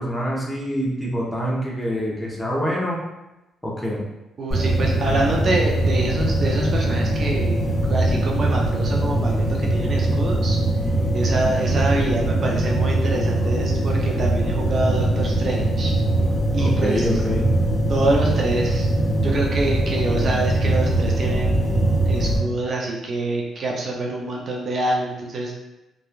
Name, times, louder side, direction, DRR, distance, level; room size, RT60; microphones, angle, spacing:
voice 1, 0.0-3.0 3.6-4.0 16.6-17.5, equal, 10° left, -4 dB, 0.8 m, -25 dB
voice 2, 4.4-7.6 7.8-10.6 11.1-15.9 16.5-17.1 17.9-18.9 19.2-25.5, right 2 dB, 50° right, -1 dB, 0.4 m, -26 dB
sound 1, 4.5-22.4, right 1 dB, 30° left, 1.1 m, -21 dB
3.0 x 2.2 x 2.4 m, 0.98 s
cardioid pair, 90°, 0 cm